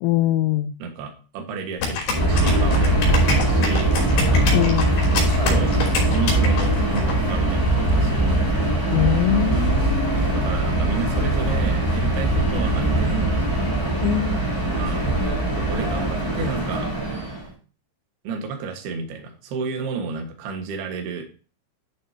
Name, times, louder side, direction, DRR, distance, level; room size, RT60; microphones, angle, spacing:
voice 1, 0.0-0.7 4.5-5.1 8.9-10.6 14.0-14.4, left 14 dB, 90° left, 9 dB, 3.3 m, -23 dB
voice 2, 0.8-4.5 5.1-8.4 9.7-9.9 10.3-13.3 14.7-15.1 15.5-16.9 18.2-21.3, right 4 dB, 60° right, 4 dB, 3.2 m, -32 dB
sound 1, 1.8-7.1, left 4 dB, 65° left, 5.3 m, -27 dB
Subway metro underground, 2.1-17.5, right 1 dB, 5° right, 3.5 m, -21 dB
11.5 x 6.6 x 2.8 m, 0.37 s
omnidirectional pair, 5.8 m